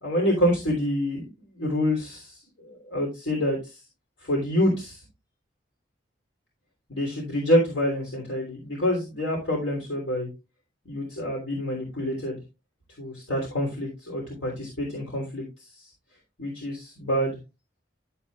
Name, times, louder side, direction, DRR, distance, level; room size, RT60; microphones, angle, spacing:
voice 1, 0.0-1.2 1.6-3.8 4.2-5.0 6.9-10.3 10.8-12.4 13.0-15.9 16.4-17.4, equal, 85° left, -2 dB, 3.2 m, -27 dB
11.5 x 7.3 x 2.4 m, 0.27 s
head